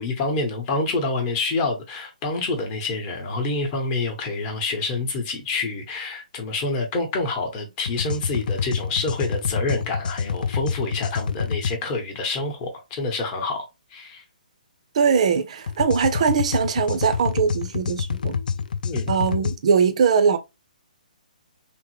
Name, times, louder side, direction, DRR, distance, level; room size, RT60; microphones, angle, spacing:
voice 1, 0.0-14.2 18.8-19.1, left 3 dB, 20° left, 0.9 m, -27 dB
sound 1, 7.9-11.8 15.7-19.6, left 6 dB, 75° left, 0.4 m, -27 dB
voice 2, 14.9-18.4 19.1-20.4, right 6 dB, 45° right, 0.6 m, -21 dB
3.6 x 2.1 x 3.0 m
hypercardioid pair, 165°, 5 cm